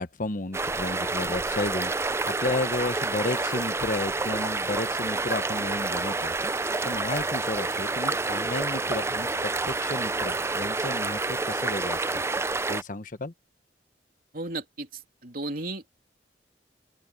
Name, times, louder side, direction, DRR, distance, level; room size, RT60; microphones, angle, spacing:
voice 1, 0.0-1.9 2.3-6.3 6.8-9.3 9.7-12.2 12.7-13.3, left 2 dB, 50° left, 1.1 m, -32 dB
sound 1, 0.5-12.8, right 3 dB, 15° right, 0.4 m, -28 dB
voice 2, 14.3-15.9, right 2 dB, 55° right, 3.2 m, -35 dB
open air
head